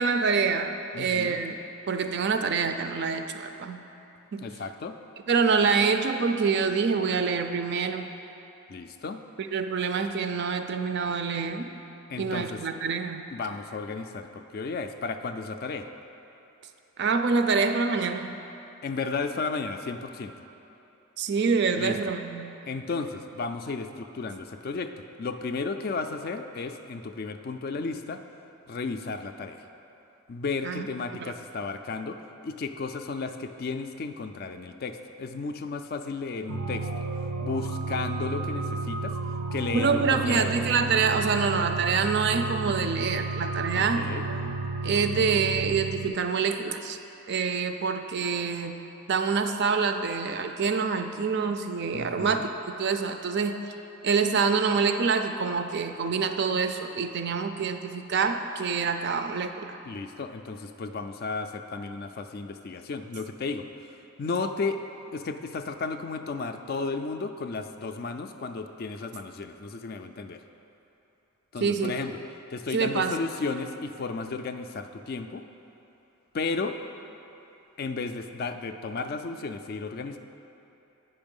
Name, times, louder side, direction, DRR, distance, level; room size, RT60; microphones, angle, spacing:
voice 1, 0.0-1.6 1.9-3.9 4.3-4.4 5.3-8.1 9.4-11.7 12.2-13.2 17.0-18.3 21.2-22.6 30.6-30.9 31.2-31.3 39.7-44.0 44.8-47.0 47.3-48.8 49.1-52.4 52.8-53.6 54.0-59.8 71.6-72.0 72.7-73.1, right 5 dB, 50° right, 7 dB, 0.4 m, -26 dB
voice 2, 0.9-1.4 4.4-5.0 8.7-9.2 12.1-12.6 13.3-15.9 18.8-20.3 21.7-22.0 22.6-24.9 25.2-28.2 28.7-29.6 30.3-32.2 32.4-36.9 37.4-39.2 39.5-40.5 43.7-44.3 51.9-52.5 59.8-63.7 64.2-64.8 65.1-70.4 71.5-72.2 72.5-75.4 76.3-76.8 77.8-80.2, left 4 dB, 40° left, 8 dB, 0.3 m, -33 dB
sound 1, 36.5-46.1, right 3 dB, 85° right, 0.7 m, -32 dB
8.6 x 5.6 x 5.3 m, 3.0 s
head